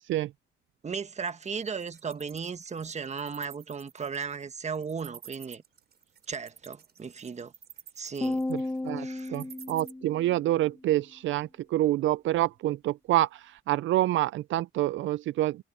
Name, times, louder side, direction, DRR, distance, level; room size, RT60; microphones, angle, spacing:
voice 1, 0.8-5.6 6.3-7.5 8.0-8.4 9.0-9.4, right 5 dB, 35° right, 1.4 m, -36 dB
Wild animals, 1.3-9.9, right 8 dB, 55° right, 6.3 m, -50 dB
sound 1, 8.2-10.6, left 2 dB, 10° left, 1.0 m, -34 dB
voice 2, 8.5-15.6, right 15 dB, 75° right, 0.4 m, -27 dB
cardioid pair, 90°, 20 cm